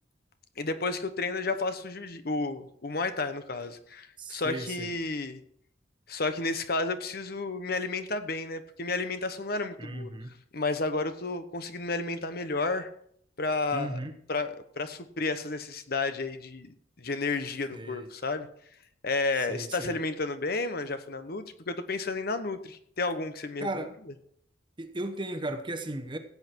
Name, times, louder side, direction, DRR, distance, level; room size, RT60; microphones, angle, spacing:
voice 1, 0.6-5.4 6.1-10.1 10.5-12.9 13.4-14.0 14.3-18.5 19.0-23.7, left 3 dB, 55° left, 1.1 m, -32 dB
voice 2, 4.2-4.9 9.8-10.4 13.7-14.1 17.7-18.1 19.4-20.0 23.6-23.9 24.8-26.2, right 1 dB, 25° right, 1.0 m, -36 dB
16.0 x 8.3 x 4.6 m
head